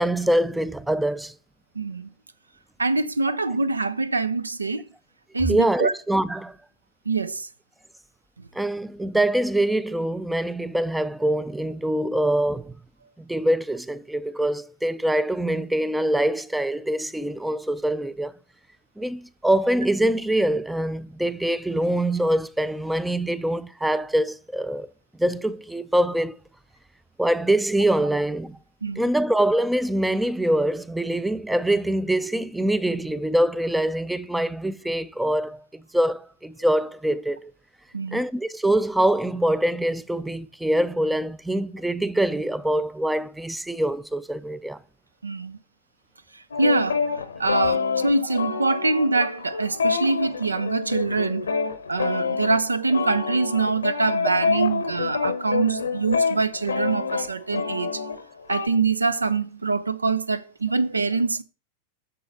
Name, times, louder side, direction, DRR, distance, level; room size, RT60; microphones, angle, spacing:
voice 1, 0.0-1.3 5.5-6.6 8.5-12.7 13.2-18.3 19.0-24.9 25.2-26.4 27.2-28.6 29.0-37.5 38.1-44.8, right 1 dB, 5° right, 0.4 m, -24 dB
voice 2, 1.8-2.1 2.8-4.8 5.3-5.9 7.1-7.5 28.8-29.1 37.9-38.2 45.2-45.6 46.3-47.1 47.4-51.5 51.9-58.0 58.5-61.4, right 3 dB, 80° right, 0.4 m, -24 dB
sound 1, 46.5-58.7, left 5 dB, 70° left, 0.7 m, -27 dB
7.6 x 6.8 x 4.0 m
figure-of-eight pair, 90°, 0 cm